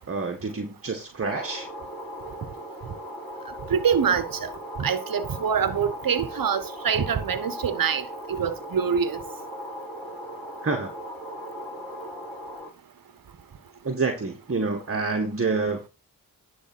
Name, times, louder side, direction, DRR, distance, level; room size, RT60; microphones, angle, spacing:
voice 1, 0.1-1.7 10.6-10.9 13.8-15.8, right 4 dB, 35° right, 1.5 m, -27 dB
sound 1, 1.2-12.7, equal, 5° left, 3.7 m, -38 dB
voice 2, 3.7-4.5 4.8-8.0 8.3-9.2, right 7 dB, 60° right, 1.2 m, -25 dB
10.5 x 3.7 x 6.0 m
supercardioid pair, 45°, 39 cm